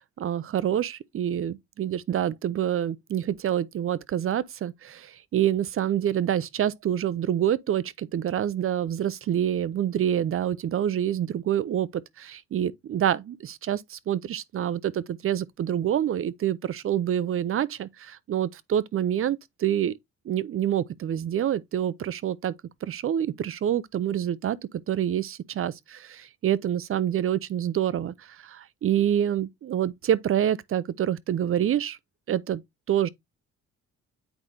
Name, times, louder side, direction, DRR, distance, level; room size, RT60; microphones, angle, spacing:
voice 1, 0.0-19.9 20.3-22.5 22.8-24.6 24.9-32.0 32.3-32.6 32.9-33.1, right 10 dB, 45° right, 0.5 m, -27 dB
8.2 x 5.0 x 2.7 m
cardioid pair, 90°, 30 cm